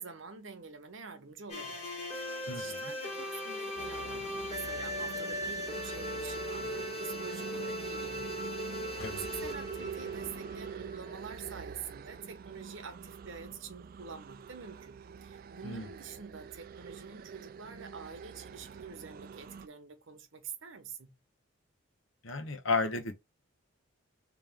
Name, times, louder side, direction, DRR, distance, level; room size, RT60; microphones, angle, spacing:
voice 1, 0.0-21.1, right 6 dB, 65° right, 0.9 m, -47 dB
sound 1, 1.5-11.4, left 1 dB, 30° left, 1.4 m, -39 dB
voice 2, 2.5-2.9 9.0-9.2 15.6-15.9 22.2-23.2, left 3 dB, 70° left, 0.9 m, -33 dB
sound 2, 3.8-19.7, right 6 dB, 45° right, 0.3 m, -45 dB
sound 3, 9.0-11.3, left 4 dB, 90° left, 0.6 m, -52 dB
3.5 x 3.0 x 3.5 m
head